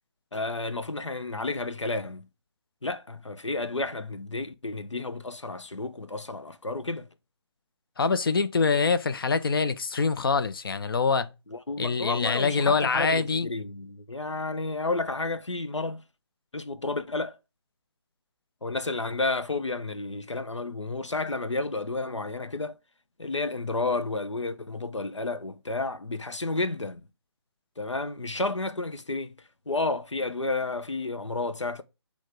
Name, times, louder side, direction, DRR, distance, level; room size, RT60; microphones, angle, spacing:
voice 1, 0.3-2.3 2.8-7.1 11.5-16.0 16.5-17.4 18.6-22.7 23.2-27.0 27.8-29.3 29.7-31.8, left 3 dB, 90° left, 0.8 m, -31 dB
voice 2, 8.0-11.3 11.8-13.5, left 5 dB, 50° left, 0.6 m, -25 dB
6.3 x 3.4 x 4.9 m
figure-of-eight pair, 145°, 15 cm